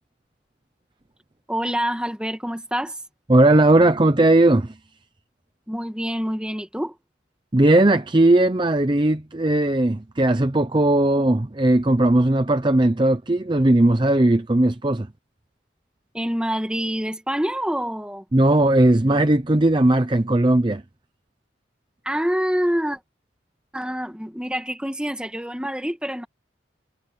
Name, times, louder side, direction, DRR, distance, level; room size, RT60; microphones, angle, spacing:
voice 1, 1.5-3.0 5.7-6.9 16.1-18.2 22.0-23.0 23.7-26.3, equal, 5° right, 1.9 m, -26 dB
voice 2, 3.3-4.7 7.5-15.1 18.3-20.8, right 1 dB, 25° right, 0.7 m, -18 dB
head